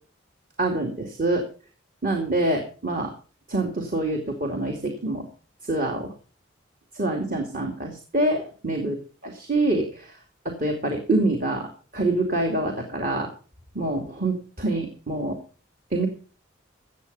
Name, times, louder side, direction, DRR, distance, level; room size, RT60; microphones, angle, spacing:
voice 1, 0.6-1.4 2.0-3.1 3.5-5.3 5.6-6.1 6.9-9.0 9.2-10.1 10.4-13.3 13.7-15.4 15.9-16.1, right 2 dB, 45° right, 2 dB, 2.5 m, -26 dB
15.5 x 8.6 x 5.5 m, 0.38 s
head